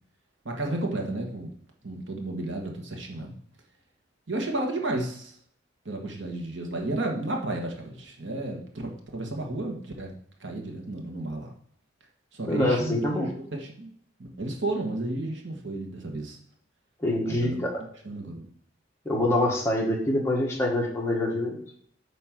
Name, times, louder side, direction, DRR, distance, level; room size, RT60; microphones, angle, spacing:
voice 1, 0.4-1.5 1.8-3.3 4.3-5.4 5.8-10.1 10.4-11.5 12.3-13.9 14.2-16.4 17.2-17.6 18.0-18.5, right 2 dB, 80° right, 1 dB, 1.5 m, -32 dB
voice 2, 12.5-13.3 17.0-17.7 19.1-21.6, left 1 dB, 15° left, -2 dB, 1.6 m, -25 dB
8.5 x 3.0 x 6.0 m, 0.63 s
head